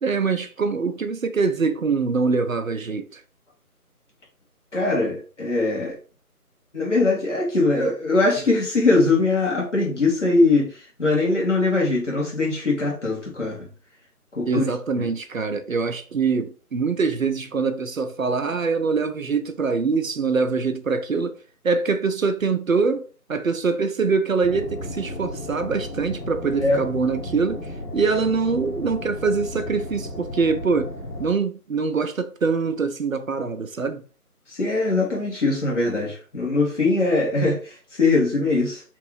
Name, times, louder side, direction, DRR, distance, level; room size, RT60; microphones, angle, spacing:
voice 1, 0.0-3.2 14.5-21.4 21.6-27.7 27.9-30.9 31.2-34.0, right 4 dB, 60° right, 0.5 m, -24 dB
voice 2, 4.7-5.9 6.7-13.7 14.3-14.6 15.0-15.1 26.6-26.8 34.5-38.8, left 3 dB, 50° left, 1.6 m, -21 dB
sound 1, 24.4-31.3, left 1 dB, 85° left, 1.3 m, -34 dB
3.1 x 2.5 x 3.2 m
figure-of-eight pair, 160°, 46 cm